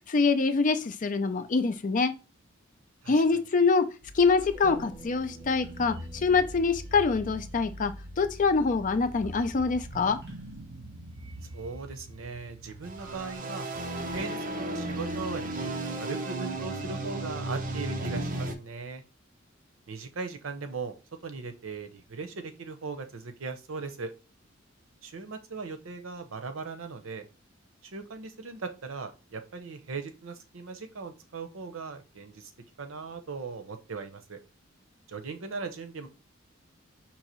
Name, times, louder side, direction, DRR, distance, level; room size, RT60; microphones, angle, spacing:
voice 1, 0.1-2.1 3.1-3.9 4.1-6.0 6.2-10.2, left 4 dB, 40° left, 0.5 m, -25 dB
voice 2, 3.0-3.5 11.5-13.7 14.1-19.0 19.9-21.0 21.2-24.1 25.0-27.3 27.8-32.5 32.8-34.4 35.1-36.1, right 4 dB, 85° right, 0.7 m, -39 dB
sound 1, 4.0-13.4, equal, 60° right, 1.4 m, -43 dB
sound 2, 12.8-18.5, right 2 dB, 45° right, 0.7 m, -34 dB
5.4 x 2.9 x 3.0 m
head